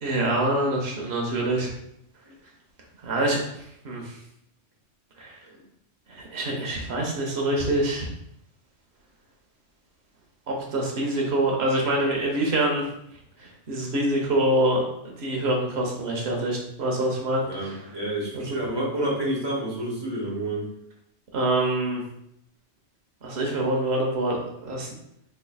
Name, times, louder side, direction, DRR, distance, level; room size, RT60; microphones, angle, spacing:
voice 1, 0.0-1.7 3.0-4.2 5.2-5.4 6.1-8.1 10.5-12.9 13.4-14.8 15.2-17.9 18.3-18.5 21.3-22.0 23.2-24.4 24.6-24.9, right 1 dB, 65° right, -1 dB, 1.1 m, -25 dB
voice 2, 17.4-20.7, right 1 dB, 25° right, -5 dB, 1.1 m, -29 dB
4.5 x 3.1 x 2.3 m, 0.75 s
omnidirectional pair, 1.2 m